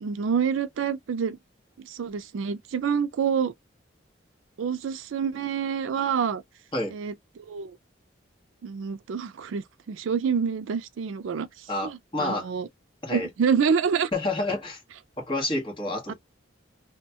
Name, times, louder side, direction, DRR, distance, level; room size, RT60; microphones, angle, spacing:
voice 1, 0.0-1.4 1.8-3.5 4.6-6.4 6.9-7.8 8.6-11.5 11.8-12.7 13.1-14.1 16.1-16.2, right 6 dB, 80° right, 0.4 m, -27 dB
voice 2, 11.7-12.5 13.0-13.3 14.1-14.8 15.2-16.1, left 2 dB, 25° left, 1.1 m, -29 dB
3.0 x 2.2 x 2.7 m
head